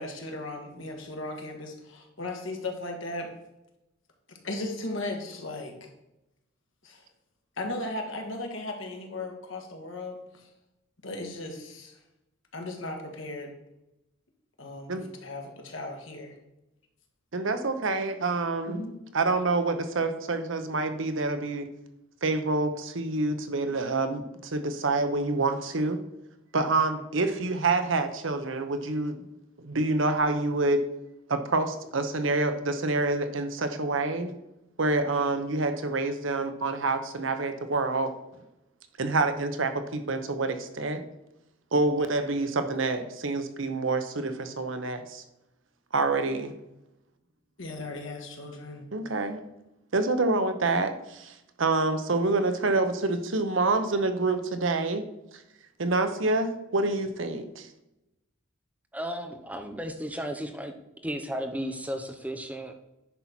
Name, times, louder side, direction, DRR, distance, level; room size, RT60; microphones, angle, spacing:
voice 1, 0.0-3.3 4.3-5.9 6.8-7.0 7.6-10.5 11.0-12.0 12.5-13.5 14.6-16.4 18.7-19.0 26.6-26.8 47.6-48.9, left 2 dB, 75° left, 2 dB, 1.8 m, -37 dB
voice 2, 17.3-18.8 19.1-21.7 22.2-26.0 26.5-29.2 29.6-30.9 31.3-34.3 34.8-38.1 39.0-41.0 41.7-45.2 45.9-46.5 48.9-49.4 49.9-55.1 55.8-57.7, right 3 dB, 70° right, 9 dB, 0.9 m, -27 dB
voice 3, 58.9-60.7 61.0-62.8, equal, 5° right, 5 dB, 0.7 m, -34 dB
10.0 x 4.1 x 6.0 m, 0.90 s
head